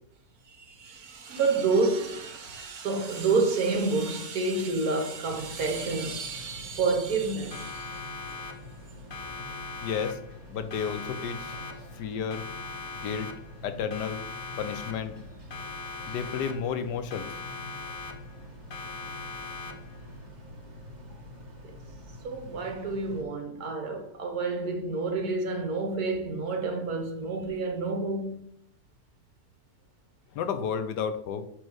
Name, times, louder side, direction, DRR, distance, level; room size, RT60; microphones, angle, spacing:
voice 1, 0.5-7.9 22.2-28.4, right 3 dB, 65° right, 1.6 m, -29 dB
sound 1, 5.2-23.2, left 1 dB, 30° right, 1.4 m, -46 dB
Siren, 7.5-8.8 9.1-10.4 10.7-12.0 12.3-13.6 13.9-15.2 15.5-16.8 17.1-18.4 18.7-20.0, left 3 dB, 40° left, 0.8 m, -40 dB
voice 2, 9.8-10.2 10.5-11.5 12.0-12.4 13.0-13.3 13.6-14.2 14.6-15.1 16.1-17.3 30.3-31.5, left 7 dB, 85° left, 1.3 m, -32 dB
8.6 x 3.3 x 6.3 m
omnidirectional pair, 1.8 m